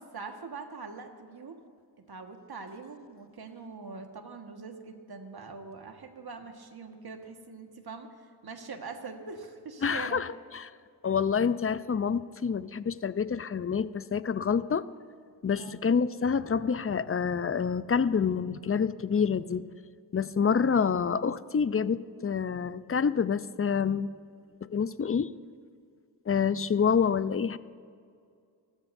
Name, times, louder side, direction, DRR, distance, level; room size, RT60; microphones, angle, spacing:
voice 1, 0.0-1.6 2.1-10.2 15.6-15.8, right 4 dB, 55° right, 5 dB, 1.7 m, -43 dB
voice 2, 9.8-10.3 10.5-10.6 11.0-14.9 15.4-19.7 20.1-24.1 24.7-25.3 26.3-27.6, left 6 dB, 30° left, 15 dB, 0.6 m, -27 dB
24.5 x 13.5 x 2.7 m, 2.3 s
supercardioid pair, 40°, 45 cm